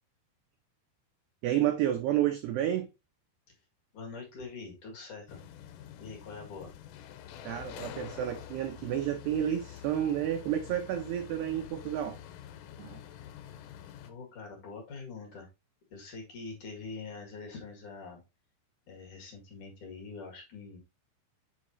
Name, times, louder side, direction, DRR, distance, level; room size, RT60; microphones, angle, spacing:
voice 1, 1.4-2.9 7.4-12.2 12.8-13.0, right 11 dB, 85° right, 2.3 m, -30 dB
voice 2, 3.9-5.4 6.0-6.7 13.5-13.6 14.0-15.5 15.9-18.2 18.9-20.8, left 4 dB, 50° left, 2.8 m, -44 dB
sound 1, 5.3-14.1, left 10 dB, 85° left, 3.3 m, -47 dB
8.7 x 4.8 x 3.0 m
omnidirectional pair, 5.7 m